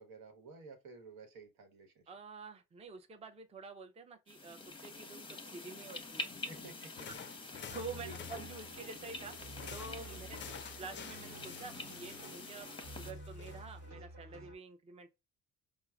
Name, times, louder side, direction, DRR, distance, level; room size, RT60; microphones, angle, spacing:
voice 1, 0.0-2.0 6.5-7.1 8.0-8.2, right 4 dB, 75° right, 1.1 m, -52 dB
voice 2, 2.1-6.2 7.5-9.3 9.7-15.1, right 4 dB, 20° right, 0.5 m, -48 dB
sound 1, 4.3-13.1, left 2 dB, 15° left, 0.7 m, -47 dB
sound 2, 6.9-13.9, left 8 dB, 35° left, 0.4 m, -51 dB
sound 3, 7.7-14.5, equal, 55° right, 1.3 m, -51 dB
4.5 x 2.0 x 2.2 m
cardioid pair, 90°, 34 cm